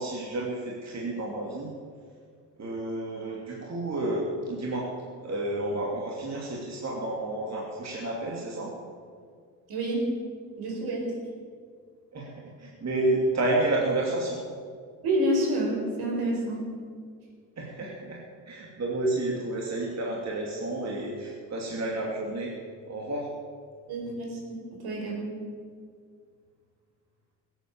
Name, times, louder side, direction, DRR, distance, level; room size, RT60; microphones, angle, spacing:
voice 1, 0.0-1.7 2.6-4.9 5.2-8.7 12.1-12.3 12.6-14.4 17.6-18.2 18.5-22.5 22.9-23.3, right 2 dB, 40° right, -3 dB, 2.9 m, -30 dB
voice 2, 9.7-10.0 10.6-11.1 15.0-16.7 23.9-25.4, right 1 dB, 70° right, -1 dB, 4.9 m, -28 dB
16.5 x 9.1 x 7.3 m, 2.1 s
supercardioid pair, 65°, 40 cm